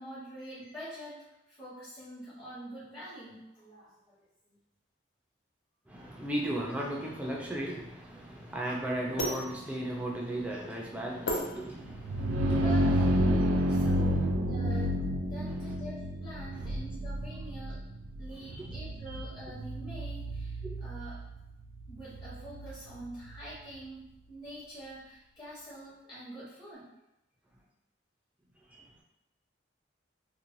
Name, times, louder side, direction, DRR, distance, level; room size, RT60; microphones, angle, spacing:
voice 1, 0.0-4.6 12.6-13.1 13.7-15.0 15.3-17.8 18.2-21.2 21.9-26.9, right 1 dB, 25° left, -10 dB, 0.9 m, -45 dB
voice 2, 5.9-12.6 13.6-14.3 16.6-16.7 18.4-18.7 19.1-19.2 20.6-20.7 28.7-28.8, right 1 dB, 5° right, -3 dB, 0.4 m, -36 dB
sound 1, 7.1-12.3, left 1 dB, 70° left, 0.6 m, -38 dB
sound 2, 11.9-23.5, equal, 80° right, 0.3 m, -30 dB
3.0 x 2.2 x 2.6 m, 0.90 s
head